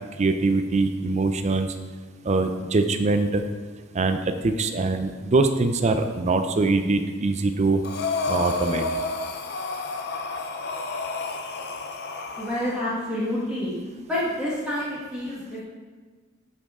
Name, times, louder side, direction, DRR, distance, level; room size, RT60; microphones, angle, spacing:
voice 1, 0.2-1.7 2.2-3.4 3.9-7.8 8.3-8.8, right 3 dB, 30° right, 8 dB, 0.4 m, -23 dB
Breathing, 7.8-12.8, left 3 dB, 50° left, 0.6 m, -30 dB
voice 2, 12.4-13.7 14.1-15.6, left 1 dB, 5° right, -9 dB, 1.5 m, -28 dB
11.0 x 5.3 x 3.7 m, 1.4 s
head